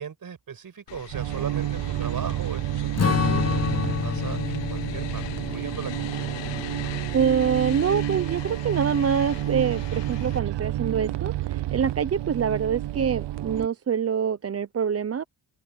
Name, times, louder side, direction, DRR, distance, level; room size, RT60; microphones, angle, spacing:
voice 1, 0.0-6.1, right 7 dB, 50° right, 5.7 m, -37 dB
sound 1, 0.9-10.4, left 14 dB, 85° left, 1.0 m, -41 dB
sound 2, 1.1-13.7, right 14 dB, 75° right, 0.9 m, -30 dB
Strum, 3.0-7.6, left 6 dB, 35° left, 1.1 m, -29 dB
voice 2, 7.1-15.2, right 7 dB, 35° right, 0.7 m, -25 dB
open air
cardioid pair, 80°, 42 cm